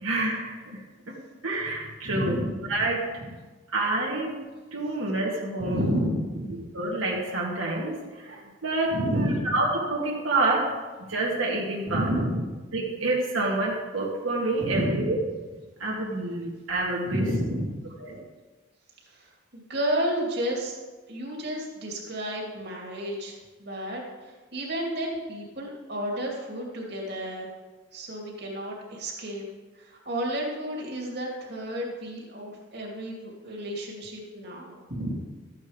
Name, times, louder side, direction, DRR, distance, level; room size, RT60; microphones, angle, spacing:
voice 1, 0.0-1.2 1.4-2.4 2.7-3.0 3.7-4.4 4.7-5.8 6.7-10.7 11.1-12.1 12.7-15.2 15.8-17.3 18.0-18.2, right 2 dB, 85° right, -3 dB, 2.0 m, -28 dB
voice 2, 2.0-2.8 5.6-6.6 8.9-9.5 11.9-12.5 14.6-15.1 17.0-17.8 19.1-20.8 21.1-27.5 27.9-29.5 29.7-35.1, equal, 55° right, -2 dB, 2.5 m, -31 dB
13.5 x 8.4 x 5.0 m, 1.3 s
head